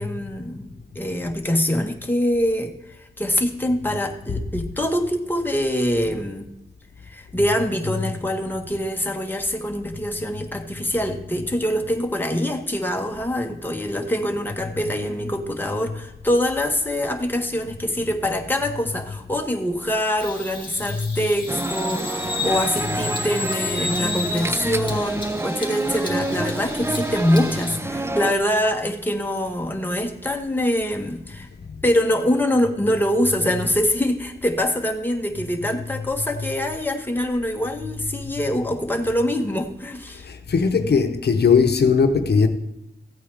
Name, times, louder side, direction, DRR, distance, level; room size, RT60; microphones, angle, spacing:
voice 1, 0.0-6.4 7.0-31.5 31.8-40.3, equal, 10° left, 1.4 m, -24 dB
Bird vocalization bird call bird song, 20.2-27.8, left 3 dB, 30° left, 2.5 m, -32 dB
sound 1, 21.5-28.3, right 2 dB, 15° right, 0.5 m, -28 dB
voice 2, 40.5-42.5, left 5 dB, 75° left, 0.8 m, -18 dB
15.0 x 8.7 x 3.5 m
wide cardioid pair, 90°, 17 cm